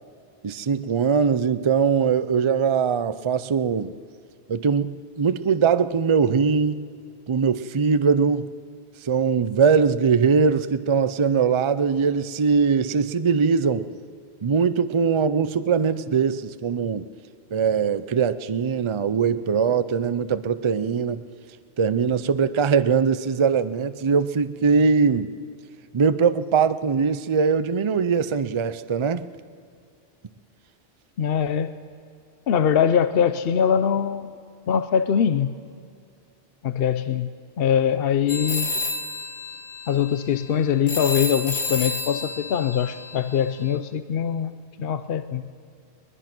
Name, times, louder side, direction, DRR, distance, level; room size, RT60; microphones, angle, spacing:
voice 1, 0.4-3.9 4.5-6.9 7.3-8.5 9.0-13.9 14.4-17.1 17.5-21.2 21.8-25.3 25.9-29.3, right 6 dB, 35° right, 13 dB, 0.5 m, -21 dB
voice 2, 31.2-31.7 32.5-34.3 34.7-35.5 36.6-37.3 37.6-38.8 39.9-45.4, left 8 dB, 65° left, 12 dB, 0.9 m, -22 dB
sound 1, 38.3-43.8, left 3 dB, 80° left, 1.8 m, -31 dB
22.0 x 21.0 x 6.1 m, 2.3 s
omnidirectional pair, 1.1 m